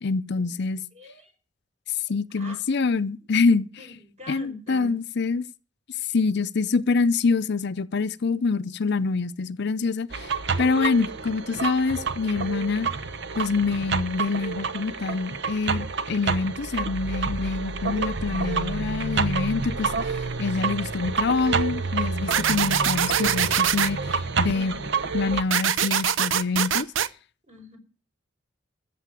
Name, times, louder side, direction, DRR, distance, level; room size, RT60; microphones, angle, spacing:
voice 1, 0.0-0.8 2.1-3.7 4.3-5.5 6.1-12.9 13.4-24.7 25.1-26.9, left 4 dB, 60° left, 0.6 m, -26 dB
voice 2, 0.9-1.3 2.3-2.6 3.8-4.9 24.5-24.8 27.5-27.8, equal, 35° right, 5.2 m, -44 dB
sound 1, 10.1-25.4, right 4 dB, 65° right, 1.0 m, -29 dB
sound 2, 22.3-23.9 25.5-27.1, right 9 dB, 80° right, 0.7 m, -23 dB
14.0 x 7.6 x 7.6 m
head